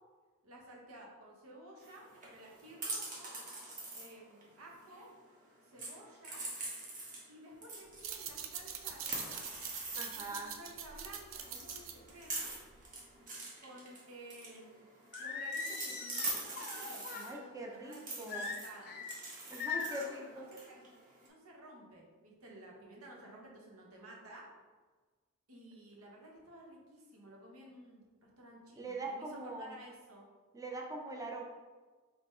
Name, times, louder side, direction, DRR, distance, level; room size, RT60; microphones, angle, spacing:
voice 1, 0.4-3.4 3.9-5.1 5.7-6.5 7.3-9.5 10.1-12.5 13.6-14.9 15.2-19.0 19.7-20.9 21.2-24.5 25.5-30.3, right 1 dB, 80° right, -2 dB, 1.1 m, -54 dB
sound 1, 1.8-5.3 5.7-7.3 7.6-10.5 10.9-11.1 11.3-17.3 17.9-21.3, right 2 dB, 40° right, 1.1 m, -44 dB
sound 2, 7.9-13.1, right 8 dB, 65° right, 0.4 m, -45 dB
voice 2, 9.9-10.5 17.1-18.5 19.5-20.5 28.7-29.7 30.5-31.4, right 2 dB, 15° right, 0 dB, 0.5 m, -42 dB
Singing, 15.1-17.3 18.3-19.1 19.6-20.1, left 5 dB, 50° left, 0.6 m, -40 dB
3.9 x 2.9 x 4.4 m, 1.4 s
head